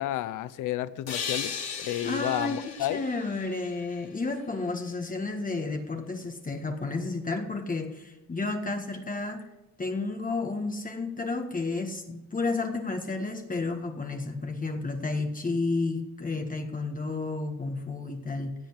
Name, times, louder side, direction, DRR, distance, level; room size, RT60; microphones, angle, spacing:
voice 1, 0.0-3.0, left 13 dB, 85° left, 16 dB, 0.7 m, -31 dB
sound 1, 1.1-4.6, left 6 dB, 60° left, 2.9 m, -37 dB
voice 2, 2.0-9.5 9.8-18.5, left 3 dB, 25° left, 3 dB, 1.8 m, -31 dB
16.5 x 7.4 x 7.4 m, 1.0 s
cardioid pair, 90°, 30 cm